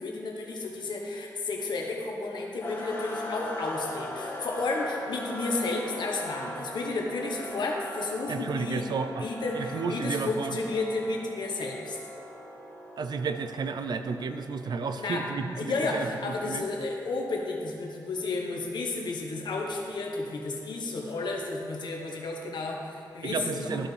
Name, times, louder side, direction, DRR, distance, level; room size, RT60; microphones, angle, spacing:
voice 1, 0.0-8.9 9.2-12.0 15.0-15.3 15.6-23.9, left 3 dB, 75° left, 0 dB, 1.1 m, -32 dB
sound 1, 2.6-16.7, left 1 dB, 30° left, 1.6 m, -41 dB
voice 2, 8.3-9.3 9.5-10.6 13.0-16.6 23.2-23.9, right 5 dB, 65° right, 9 dB, 0.4 m, -32 dB
13.0 x 4.4 x 3.3 m, 2.6 s
cardioid pair, 75°, 8 cm